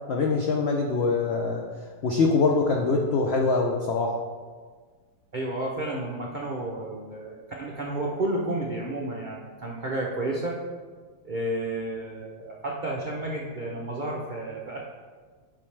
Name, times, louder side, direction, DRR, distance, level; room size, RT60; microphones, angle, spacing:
voice 1, 0.1-1.7 2.0-4.2, left 4 dB, 75° left, 1 dB, 0.6 m, -23 dB
voice 2, 5.3-10.6 11.2-14.8, right 1 dB, 60° right, -3 dB, 0.4 m, -31 dB
8.6 x 5.6 x 3.3 m, 1.5 s
omnidirectional pair, 1.8 m